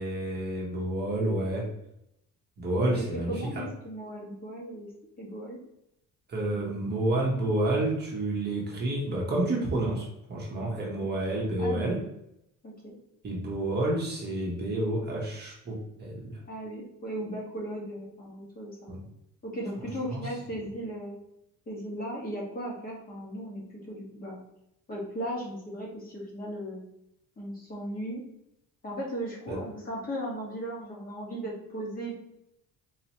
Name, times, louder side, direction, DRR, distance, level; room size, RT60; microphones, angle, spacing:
voice 1, 0.0-1.7 2.6-3.6 6.3-12.0 13.2-16.4 18.9-19.0 20.1-20.3 29.5-29.6, right 1 dB, 30° right, -3 dB, 1.0 m, -29 dB
voice 2, 2.9-4.9 5.2-5.6 11.0-11.1 11.6-11.9 12.6-12.9 16.5-18.8 19.4-21.2 21.7-24.4 24.9-26.8 27.4-28.2 28.8-32.1, right 1 dB, 25° left, -4 dB, 1.3 m, -37 dB
4.0 x 2.9 x 2.9 m, 0.81 s
cardioid pair, 155°, 33 cm